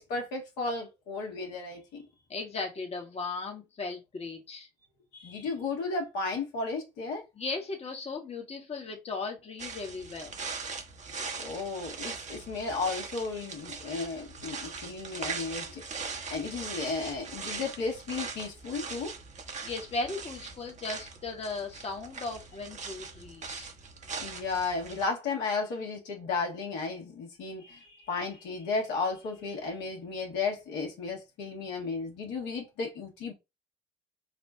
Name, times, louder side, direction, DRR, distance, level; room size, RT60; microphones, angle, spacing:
voice 1, 0.0-2.0 5.1-7.3 11.4-15.8 16.3-19.1 24.2-33.3, left 4 dB, 70° left, 1.6 m, -34 dB
voice 2, 2.3-4.7 7.4-10.3 19.6-23.7, left 3 dB, 35° left, 1.3 m, -37 dB
sound 1, 9.6-25.1, right 5 dB, 40° right, 1.1 m, -41 dB
4.1 x 2.4 x 4.4 m
hypercardioid pair, 60°, 18 cm